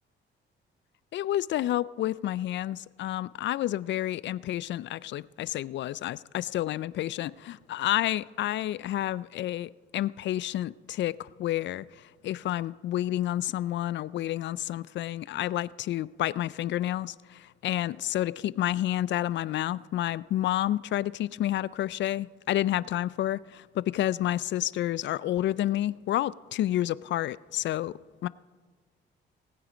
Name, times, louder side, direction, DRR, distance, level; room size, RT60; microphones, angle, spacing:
voice 1, 1.1-11.8 12.2-28.3, left 13 dB, 65° left, 0.4 m, -30 dB
19.0 x 9.4 x 5.1 m
cardioid pair, 90°, 20 cm